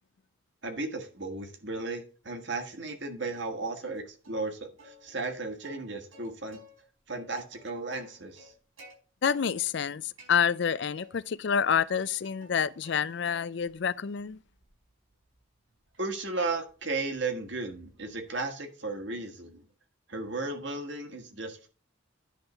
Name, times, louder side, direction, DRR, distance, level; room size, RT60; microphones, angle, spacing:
voice 1, 0.6-6.6 7.1-8.5 16.0-19.6 20.1-21.7, right 3 dB, 60° right, 1.7 m, -35 dB
Plucked string instrument, 3.3-4.0 4.2-4.4 4.8-6.8 7.1-8.9 9.3-9.9 10.2-11.2 11.5-13.0 13.2-13.7 14.2-18.4, equal, 80° right, 5.3 m, -56 dB
voice 2, 9.2-14.4, left 7 dB, 55° left, 0.4 m, -28 dB
10.5 x 3.7 x 6.7 m
head